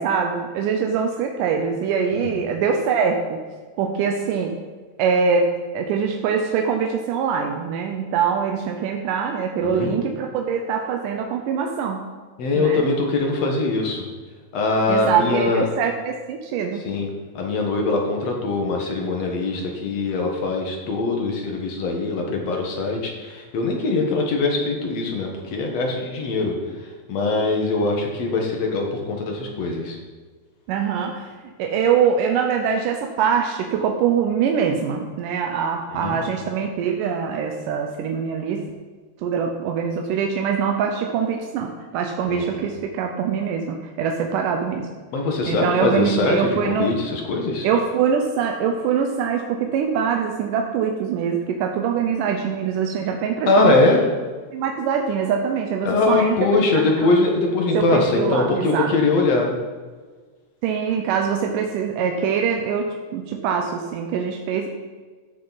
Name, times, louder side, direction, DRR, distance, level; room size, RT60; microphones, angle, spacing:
voice 1, 0.0-3.4 3.8-4.6 5.0-12.0 12.5-12.9 14.9-16.8 30.7-31.3 31.6-38.7 39.2-44.9 45.5-46.9 47.6-53.9 54.5-57.1 57.7-58.9 60.6-62.9 63.1-64.7, right 6 dB, 85° right, 3 dB, 2.3 m, -23 dB
voice 2, 9.6-9.9 12.4-14.1 14.5-15.6 16.8-17.1 17.4-26.5 27.1-30.0 36.0-36.2 42.3-42.7 45.1-47.7 53.5-54.0 55.9-59.5, left 3 dB, 60° left, 1 dB, 2.3 m, -22 dB
14.0 x 6.7 x 4.1 m, 1.4 s
omnidirectional pair, 3.7 m